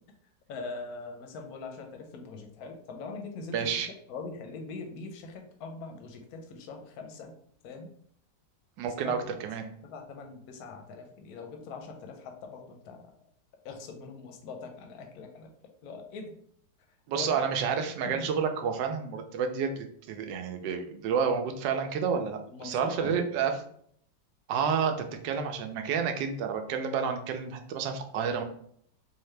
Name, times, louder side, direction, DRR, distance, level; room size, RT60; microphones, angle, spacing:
voice 1, 0.5-7.3 7.6-7.9 8.8-9.4 9.8-13.1 13.6-15.5 15.8-16.3 17.1-17.4 18.0-18.3 22.5-23.2, left 4 dB, 65° left, 3 dB, 1.0 m, -42 dB
voice 2, 3.5-3.9 8.8-9.7 17.1-23.6 24.5-28.4, right 6 dB, 75° right, 6 dB, 1.2 m, -30 dB
3.9 x 2.8 x 3.2 m, 0.64 s
omnidirectional pair, 2.0 m